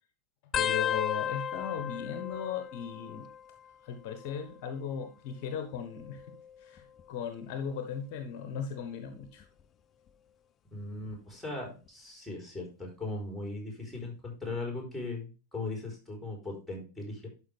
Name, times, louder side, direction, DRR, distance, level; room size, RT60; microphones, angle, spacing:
voice 1, 0.5-3.3 3.8-9.5, left 7 dB, 45° left, 7 dB, 1.0 m, -37 dB
sound 1, 0.5-3.7 4.0-4.6 5.6-7.1 7.7-8.0 9.2-9.6 11.1-11.2, left 9 dB, 25° left, 0.4 m, -36 dB
voice 2, 10.7-17.3, left 2 dB, ahead, 0 dB, 3.9 m, -38 dB
11.5 x 5.0 x 3.3 m, 0.33 s
figure-of-eight pair, 90°, 0 cm